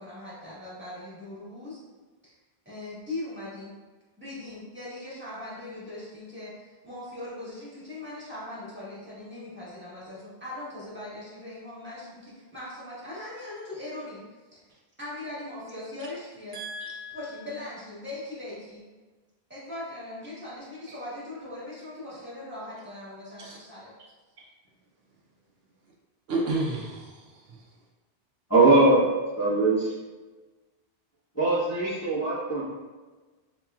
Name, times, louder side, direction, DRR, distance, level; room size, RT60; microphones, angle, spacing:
voice 1, 0.0-1.8 2.6-3.7 4.2-14.2 14.5-14.6 15.0-16.6 17.1-18.8 19.5-23.9, left 2 dB, 10° right, -9 dB, 1.4 m, -40 dB
voice 2, 16.5-17.2 23.4-23.6 26.3-27.6, right 2 dB, 75° right, -3 dB, 0.9 m, -32 dB
voice 3, 28.5-29.0 29.4-29.9 31.3-32.6, right 2 dB, 15° left, -10 dB, 0.9 m, -21 dB
4.6 x 3.0 x 2.3 m, 1.3 s
omnidirectional pair, 1.0 m